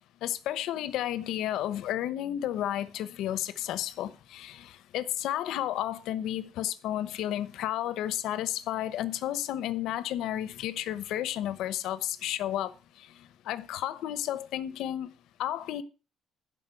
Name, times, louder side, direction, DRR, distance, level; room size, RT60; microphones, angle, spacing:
voice 1, 0.2-12.7 13.0-13.1 13.4-15.1 15.4-15.8, left 12 dB, 80° left, 0.9 m, -32 dB
11.5 x 5.2 x 7.7 m
cardioid pair, 160°, 0 cm